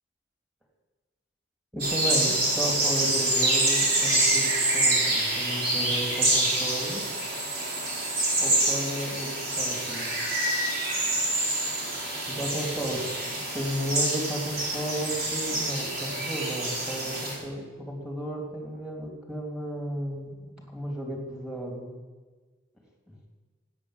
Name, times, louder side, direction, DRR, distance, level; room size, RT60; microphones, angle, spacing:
voice 1, 1.7-7.0 8.4-10.1 12.3-13.0 13.3-22.0, right 1 dB, 5° right, 0 dB, 3.2 m, -34 dB
sound 1, 1.8-17.3, right 2 dB, 55° right, 4.4 m, -26 dB
13.5 x 9.3 x 9.2 m, 1.4 s
head